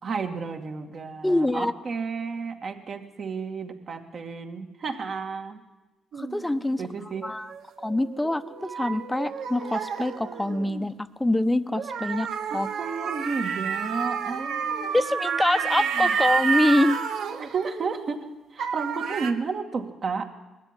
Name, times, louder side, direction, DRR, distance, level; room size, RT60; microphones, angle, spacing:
voice 1, 0.0-5.6 6.8-7.2 12.5-16.1 17.2-20.3, right 5 dB, 50° right, 4 dB, 2.4 m, -32 dB
voice 2, 1.2-1.7 6.2-6.8 7.2-7.5 7.8-12.3 12.5-12.7 14.9-17.0, left 1 dB, 10° left, 11 dB, 1.0 m, -25 dB
sound 1, 6.1-10.9 11.7-18.3 18.6-19.3, right 6 dB, 75° right, 1.3 m, -30 dB
20.0 x 13.5 x 10.0 m, 1.1 s
cardioid pair, 90°, 0 cm